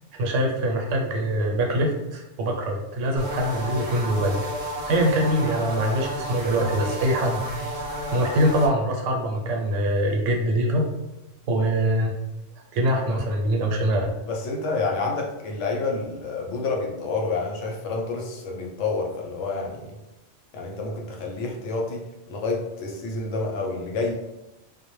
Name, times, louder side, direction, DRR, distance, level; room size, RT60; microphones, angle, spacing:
voice 1, 0.2-4.5 4.8-7.4 8.1-10.9 11.5-12.1 12.7-14.1, right 1 dB, 85° right, 1 dB, 0.9 m, -23 dB
sound 1, 3.2-8.7, equal, 50° right, 0.5 m, -32 dB
voice 2, 14.3-19.9 20.5-24.1, left 3 dB, 80° left, 0 dB, 0.9 m, -29 dB
2.1 x 2.0 x 3.0 m, 0.97 s
omnidirectional pair, 1.2 m